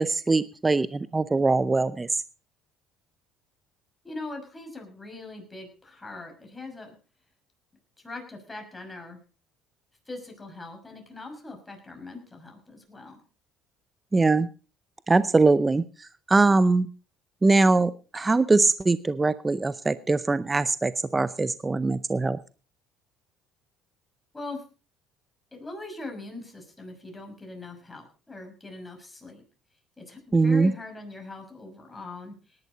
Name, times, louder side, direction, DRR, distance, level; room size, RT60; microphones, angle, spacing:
voice 1, 0.0-2.1 14.1-14.5 15.1-16.9 17.4-22.4 30.3-30.7, right 3 dB, 20° right, 15 dB, 0.6 m, -22 dB
voice 2, 4.0-6.9 8.0-9.2 10.1-13.2 24.3-24.6 25.5-29.4 30.0-32.3, left 2 dB, 15° left, 3 dB, 6.1 m, -41 dB
18.5 x 11.0 x 4.1 m, 0.34 s
supercardioid pair, 95°, 0 cm